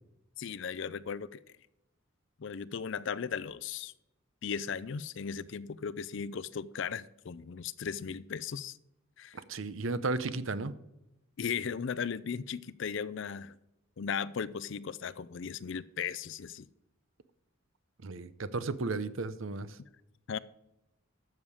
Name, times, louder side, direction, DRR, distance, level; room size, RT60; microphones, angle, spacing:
voice 1, 0.4-1.4 2.4-3.9 4.4-8.8 9.2-9.4 11.4-13.6 14.0-16.7 20.3-20.4, left 6 dB, 60° left, 18 dB, 0.5 m, -37 dB
voice 2, 9.3-10.7 18.0-19.8, right 3 dB, 70° right, 14 dB, 0.7 m, -34 dB
12.0 x 7.3 x 4.9 m, 0.88 s
head